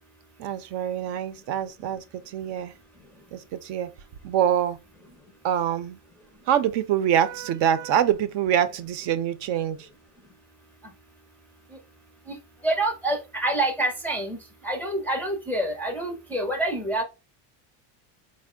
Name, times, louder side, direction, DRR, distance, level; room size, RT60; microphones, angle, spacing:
voice 1, 0.4-2.7 3.3-3.9 4.2-4.8 5.4-6.0 6.5-9.9, right 10 dB, 60° right, 0.6 m, -25 dB
voice 2, 12.6-14.4 14.6-17.0, right 1 dB, 5° left, 0.4 m, -27 dB
4.3 x 2.1 x 3.6 m
cardioid pair, 130°, 47 cm